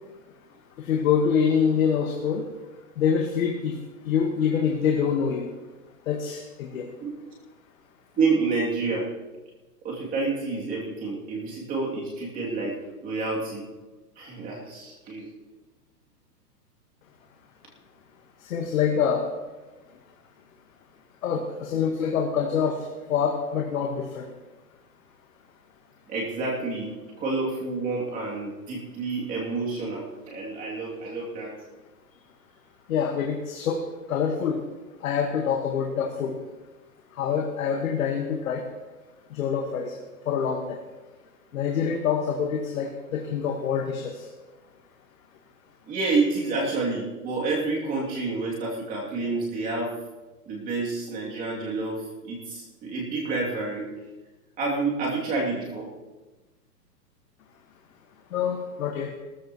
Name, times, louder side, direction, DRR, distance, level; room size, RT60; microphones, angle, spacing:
voice 1, 0.8-2.5 3.0-5.5 6.1-6.9 18.4-19.3 21.2-24.3 32.9-34.6 35.0-36.4 37.1-38.7 39.3-40.0 40.2-40.8 41.5-44.3 58.3-59.1, left 7 dB, 55° left, 2 dB, 1.6 m, -26 dB
voice 2, 8.2-9.1 9.8-12.8 13.0-13.7 14.2-15.3 26.1-31.5 45.9-49.9 50.5-53.9 54.6-55.9, right 3 dB, 15° right, -3 dB, 2.7 m, -29 dB
18.0 x 14.0 x 3.0 m, 1.2 s
hypercardioid pair, 160°, 49 cm